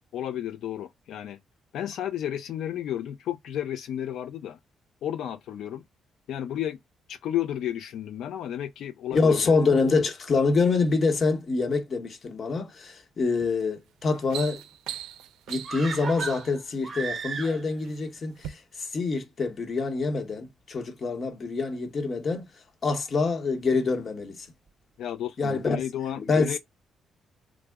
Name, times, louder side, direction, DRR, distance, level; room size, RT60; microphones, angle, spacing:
voice 1, 0.1-1.4 1.7-4.6 5.0-5.8 6.3-6.8 7.1-9.5 25.0-26.6, left 11 dB, 75° left, 0.3 m, -32 dB
voice 2, 9.1-14.6 15.5-22.5 22.8-24.5 25.4-25.8 26.2-26.6, left 4 dB, 45° left, 0.9 m, -26 dB
sound 1, 13.4-13.6 14.0-16.6 17.4-18.0 18.4-18.5, right 10 dB, 90° right, 0.4 m, -39 dB
sound 2, 15.6-17.9 18.2-18.3, right 4 dB, 40° right, 0.7 m, -35 dB
3.5 x 2.0 x 3.3 m
cardioid pair, 90°, 0 cm